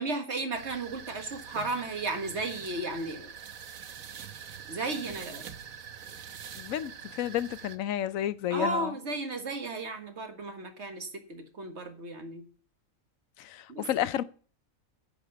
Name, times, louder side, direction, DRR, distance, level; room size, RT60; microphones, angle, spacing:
voice 1, 0.0-3.3 4.7-5.5 8.5-12.4 13.7-14.1, right 2 dB, 55° right, 1.9 m, -34 dB
sound 1, 0.5-7.8, right 7 dB, 85° right, 1.3 m, -44 dB
voice 2, 6.6-8.9 13.4-14.2, left 11 dB, 80° left, 1.0 m, -31 dB
9.7 x 4.9 x 7.9 m
omnidirectional pair, 1.4 m